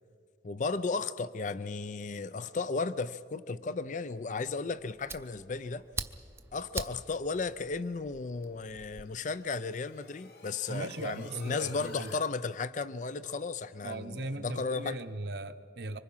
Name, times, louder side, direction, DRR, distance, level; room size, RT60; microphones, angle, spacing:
voice 1, 0.4-5.8 6.5-15.0, left 4 dB, 45° left, 0.5 m, -34 dB
Fire, 4.5-9.1, right 3 dB, 15° right, 0.6 m, -43 dB
sound 1, 8.2-12.2, left 4 dB, 60° left, 1.4 m, -54 dB
voice 2, 10.7-12.1 13.8-16.0, right 2 dB, 70° right, 0.9 m, -38 dB
25.5 x 24.5 x 5.6 m
head